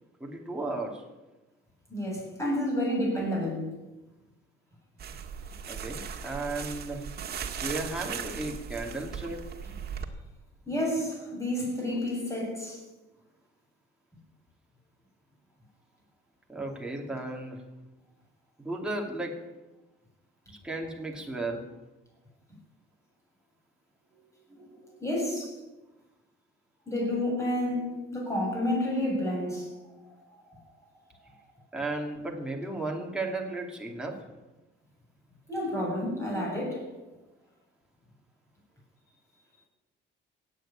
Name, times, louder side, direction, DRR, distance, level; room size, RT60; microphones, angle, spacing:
voice 1, 0.2-1.1 5.6-7.0 7.6-9.4 16.5-17.6 18.6-19.4 20.5-21.7 31.7-34.2, right 2 dB, 5° right, 2.7 m, -34 dB
voice 2, 1.9-3.7 10.7-12.8 24.5-25.6 26.9-29.7 30.5-30.6 35.5-36.9, left 1 dB, 15° left, 7.7 m, -30 dB
sound 1, 5.0-10.0, right 7 dB, 50° right, 1.7 m, -38 dB
16.5 x 9.0 x 8.7 m
cardioid pair, 125°, 21 cm